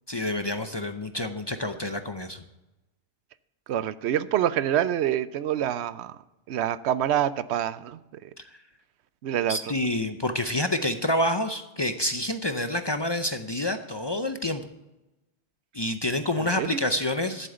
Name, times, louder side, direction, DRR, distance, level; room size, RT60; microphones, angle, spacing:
voice 1, 0.1-2.4 8.4-8.5 9.5-14.6 15.7-17.5, left 1 dB, 30° left, 8 dB, 0.5 m, -28 dB
voice 2, 3.7-6.2 6.5-8.3 9.2-9.6 16.4-16.8, right 10 dB, 85° right, 15 dB, 0.9 m, -26 dB
11.5 x 7.6 x 7.9 m, 1.0 s
omnidirectional pair, 1.1 m